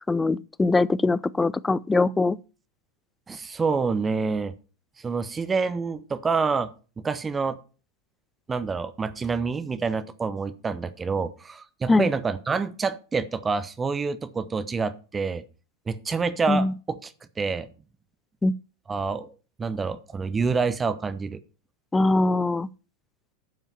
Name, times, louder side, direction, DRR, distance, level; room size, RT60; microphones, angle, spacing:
voice 1, 0.1-2.4 11.9-12.1 16.5-16.7 18.4-18.5 21.9-22.7, left 2 dB, 10° left, 0.4 m, -22 dB
voice 2, 3.3-4.5 5.0-7.6 8.5-15.4 15.9-17.1 17.4-17.7 18.9-19.3 19.6-21.4, right 4 dB, 20° right, 0.8 m, -27 dB
9.1 x 5.5 x 7.1 m
figure-of-eight pair, 90°, 0 cm